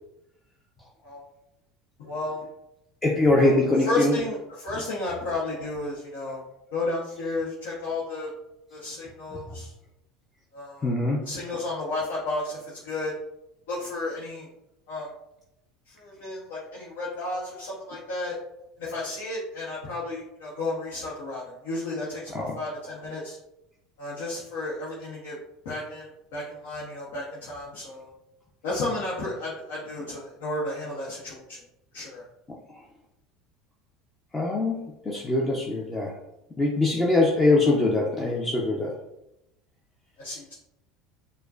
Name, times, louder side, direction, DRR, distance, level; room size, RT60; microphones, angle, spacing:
voice 1, 2.0-2.4 3.4-6.4 6.7-8.3 8.7-9.7 10.5-10.9 11.2-13.1 13.7-14.5 14.9-15.1 15.9-18.3 18.8-23.4 24.0-25.4 25.6-28.1 28.6-31.6 31.9-32.2 40.2-40.5, left 2 dB, 75° left, -6 dB, 0.9 m, -32 dB
voice 2, 3.0-4.2 10.8-11.2 22.3-22.6 34.3-36.1 36.6-38.9, left 2 dB, 20° left, -2 dB, 0.6 m, -23 dB
4.5 x 2.2 x 2.4 m, 0.86 s
hypercardioid pair, 80°, 0 cm